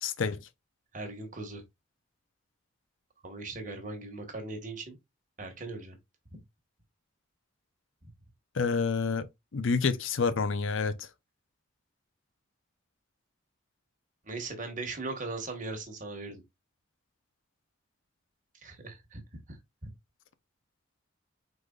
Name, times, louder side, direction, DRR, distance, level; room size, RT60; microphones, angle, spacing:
voice 1, 0.0-0.4 8.5-11.1, left 5 dB, 75° left, 0.6 m, -29 dB
voice 2, 0.9-1.6 3.2-5.0 5.4-5.9 8.0-8.1 14.2-16.4 18.6-19.2 19.5-19.9, right 3 dB, 40° right, 1.3 m, -39 dB
4.8 x 4.1 x 2.4 m
head